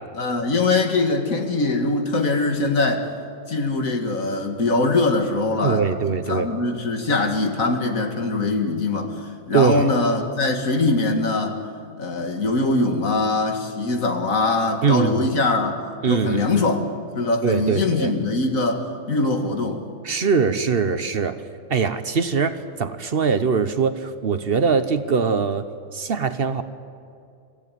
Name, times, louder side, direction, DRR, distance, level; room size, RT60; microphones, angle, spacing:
voice 1, 0.1-3.1 3.5-9.2 9.5-11.6 12.0-15.8 16.1-16.8 17.1-19.8, left 3 dB, 85° left, 4 dB, 2.4 m, -22 dB
voice 2, 5.6-6.5 9.5-9.9 14.8-15.3 16.0-16.5 17.4-18.1 20.0-21.4 21.7-25.6 25.9-26.6, right 6 dB, 50° right, 10 dB, 1.1 m, -22 dB
26.0 x 15.0 x 9.2 m, 2.4 s
omnidirectional pair, 1.4 m